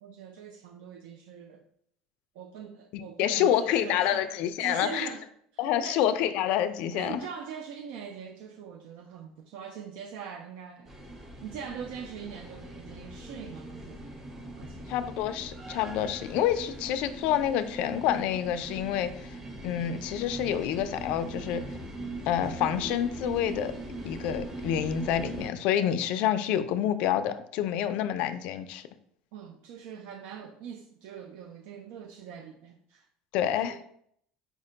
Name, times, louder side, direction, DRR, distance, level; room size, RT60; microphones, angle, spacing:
voice 1, 0.0-1.6 2.4-4.3 4.6-5.2 5.5-6.0 6.9-10.9 11.4-14.1 14.5-14.9 29.3-33.0 33.5-33.8, right 7 dB, 75° right, 4 dB, 0.4 m, -42 dB
voice 2, 2.9-5.1 5.6-7.2 14.9-19.3 19.6-21.6 22.3-23.7 24.0-28.8 33.3-33.8, left 10 dB, 60° left, 11 dB, 0.3 m, -28 dB
sound 1, 10.8-25.5, right 1 dB, 15° right, 0.8 m, -41 dB
4.5 x 2.1 x 3.8 m, 0.68 s
cardioid pair, 135°, 2 cm